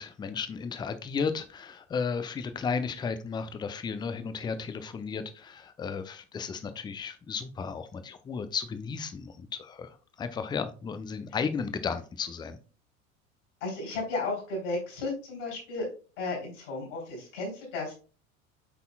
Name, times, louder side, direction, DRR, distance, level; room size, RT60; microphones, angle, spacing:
voice 1, 0.0-12.6, left 5 dB, 10° left, 0.5 m, -34 dB
voice 2, 13.6-15.9 16.2-17.9, left 3 dB, 60° left, 3.6 m, -34 dB
8.1 x 5.4 x 2.3 m
figure-of-eight pair, 80°, 41 cm